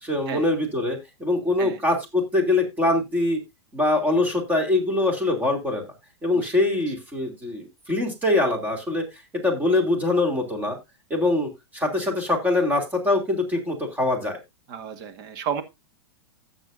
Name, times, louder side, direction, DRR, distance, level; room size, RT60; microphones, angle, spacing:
voice 1, 0.0-3.4 3.7-5.9 6.2-9.0 9.4-10.8 11.1-14.4, left 2 dB, 10° right, 4 dB, 2.8 m, -23 dB
voice 2, 14.7-15.6, right 7 dB, 45° right, 9 dB, 1.7 m, -32 dB
16.0 x 6.8 x 2.6 m, 0.21 s
supercardioid pair, 150°, 15 cm